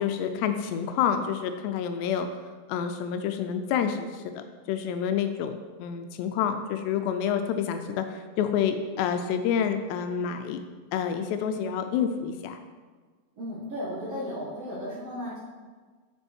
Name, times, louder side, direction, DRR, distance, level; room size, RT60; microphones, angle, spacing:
voice 1, 0.0-2.4 2.7-10.6 10.9-12.6, left 8 dB, 80° left, 7 dB, 2.5 m, -28 dB
voice 2, 13.4-15.4, equal, 85° right, -6 dB, 1.3 m, -35 dB
7.9 x 6.9 x 4.4 m, 1.4 s
omnidirectional pair, 5.2 m